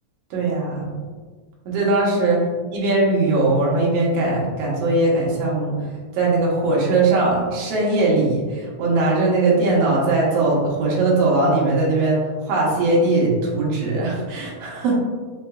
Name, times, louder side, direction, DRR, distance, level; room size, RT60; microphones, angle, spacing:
voice 1, 0.3-1.0 1.7-2.5 2.7-5.8 6.1-15.0, right 2 dB, 65° right, -4 dB, 1.8 m, -20 dB
5.6 x 2.5 x 2.3 m, 1.5 s
omnidirectional pair, 3.5 m